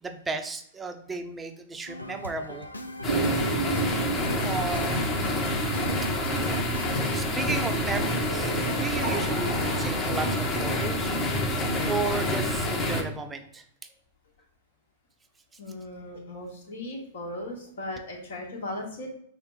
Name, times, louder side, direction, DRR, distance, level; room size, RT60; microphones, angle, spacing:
voice 1, 0.0-2.7 4.4-5.2 7.1-11.2 11.8-13.6, right 4 dB, 15° right, 5 dB, 0.6 m, -34 dB
sound 1, 1.9-7.0, left 1 dB, 90° left, 0.4 m, -39 dB
sound 2, 3.0-13.0, left 1 dB, 30° left, 0.9 m, -27 dB
sound 3, 3.1-7.3 8.3-12.1, right 5 dB, 75° right, 0.7 m, -35 dB
voice 2, 15.6-19.1, left 1 dB, 65° left, 0 dB, 1.3 m, -37 dB
5.6 x 2.1 x 3.5 m, 0.66 s
figure-of-eight pair, 100°, 0 cm